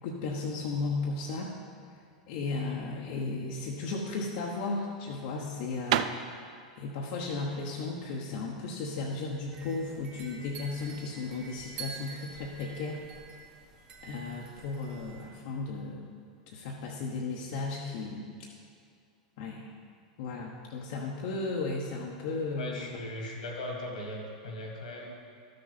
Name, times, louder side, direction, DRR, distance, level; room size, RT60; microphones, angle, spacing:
voice 1, 0.0-1.5 2.3-6.1 6.8-13.0 14.0-16.1 16.5-18.3 19.4-19.7 20.2-23.0, left 3 dB, 60° left, -2 dB, 1.0 m, -35 dB
sound 1, 4.0-9.6, right 10 dB, 65° right, 0.4 m, -35 dB
sound 2, 9.5-15.3, right 5 dB, 35° right, 1.5 m, -47 dB
voice 2, 22.6-25.1, left 1 dB, 85° left, -1 dB, 2.2 m, -38 dB
12.5 x 6.6 x 4.2 m, 2.3 s
hypercardioid pair, 110°, 4 cm